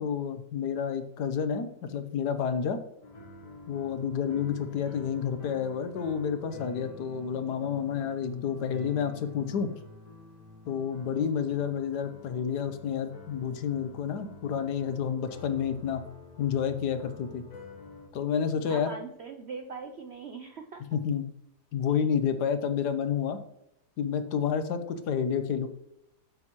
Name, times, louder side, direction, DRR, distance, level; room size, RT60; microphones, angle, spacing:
voice 1, 0.0-2.8 3.7-9.7 10.7-16.0 16.4-17.4 18.1-18.9 20.9-21.3 21.7-23.4 24.0-25.7, left 7 dB, 80° left, 9 dB, 1.4 m, -30 dB
sound 1, 3.0-18.1, left 2 dB, 60° left, 2.1 m, -48 dB
voice 2, 18.7-21.0, right 5 dB, 65° right, 6 dB, 0.6 m, -41 dB
9.5 x 7.6 x 3.0 m, 0.79 s
omnidirectional pair, 1.8 m